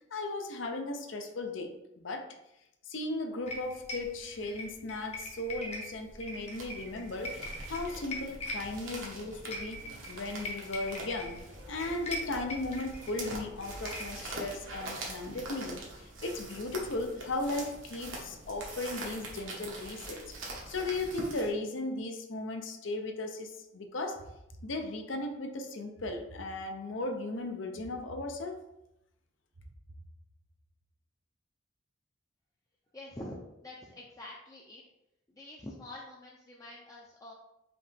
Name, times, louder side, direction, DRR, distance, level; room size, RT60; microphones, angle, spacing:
voice 1, 0.1-2.4 2.9-9.8 10.1-11.4 11.7-24.2 24.6-28.6, left 2 dB, 70° left, 5 dB, 0.6 m, -36 dB
sound 1, 3.5-14.3, left 1 dB, 35° left, 0.9 m, -43 dB
sound 2, 6.5-21.5, right 2 dB, 85° right, 1.2 m, -44 dB
sound 3, 24.1-25.3 26.0-27.1 27.7-28.9 29.5-30.7, right 1 dB, 70° right, 0.7 m, -53 dB
voice 2, 32.9-34.8 35.3-37.3, left 1 dB, 15° left, -4 dB, 0.5 m, -46 dB
4.9 x 3.0 x 3.4 m, 0.86 s
head